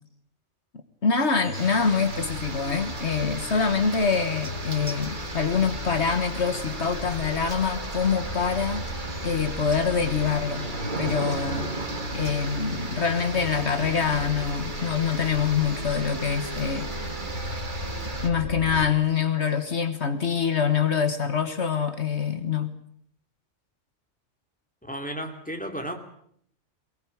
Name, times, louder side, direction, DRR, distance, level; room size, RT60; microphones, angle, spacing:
voice 1, 1.0-8.9 9.2-10.7 11.0-11.7 12.1-16.9 18.2-22.7, left 6 dB, 65° left, 9 dB, 1.7 m, -25 dB
Chime, 1.4-18.8, equal, 80° left, 4.9 m, -36 dB
sound 1, 1.5-18.3, right 3 dB, 40° right, 2.1 m, -36 dB
voice 2, 24.8-26.0, equal, 5° left, 4 dB, 2.8 m, -33 dB
23.0 x 19.0 x 8.6 m, 0.66 s
omnidirectional pair, 1.2 m